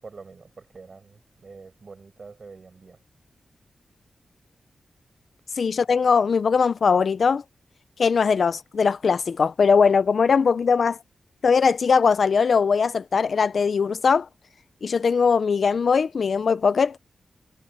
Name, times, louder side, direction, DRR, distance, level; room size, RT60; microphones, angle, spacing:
voice 1, 0.0-3.0, right 4 dB, 40° right, 7.2 m, -45 dB
voice 2, 5.6-7.4 8.0-11.0 11.4-14.3 14.8-17.0, left 5 dB, 55° left, 0.4 m, -20 dB
wide cardioid pair, 170°, 0 cm